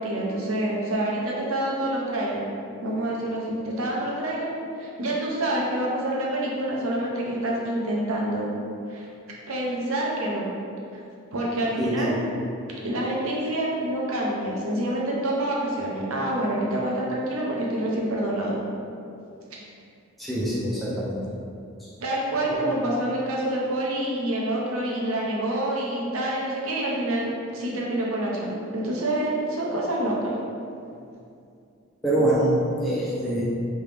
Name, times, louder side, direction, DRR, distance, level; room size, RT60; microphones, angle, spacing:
voice 1, 0.0-2.5 2.8-8.5 8.9-9.1 9.5-10.4 11.3-12.2 12.8-18.5 19.5-19.6 22.0-30.3, right 1 dB, 75° right, -3 dB, 0.7 m, -27 dB
voice 2, 11.8-12.2 20.2-21.2 21.8-21.9 32.0-32.5 32.8-33.4, right 1 dB, ahead, -9 dB, 0.5 m, -25 dB
3.4 x 2.9 x 3.4 m, 2.5 s
head